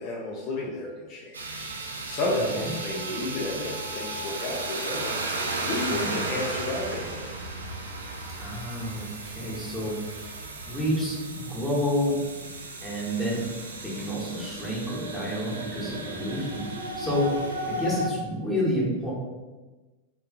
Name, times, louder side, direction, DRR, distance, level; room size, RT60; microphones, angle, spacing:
voice 1, 0.0-1.7 2.1-7.3 15.8-16.2, left 2 dB, 40° left, -3 dB, 0.4 m, -32 dB
sound 1, 1.3-18.1, right 2 dB, 70° right, 0.3 m, -34 dB
voice 2, 5.9-6.2 8.4-10.3 10.6-12.2 12.8-13.5 13.8-16.6 17.0-17.3 17.6-19.1, equal, ahead, -7 dB, 0.9 m, -29 dB
2.6 x 2.5 x 2.4 m, 1.2 s
figure-of-eight pair, 90°, 0 cm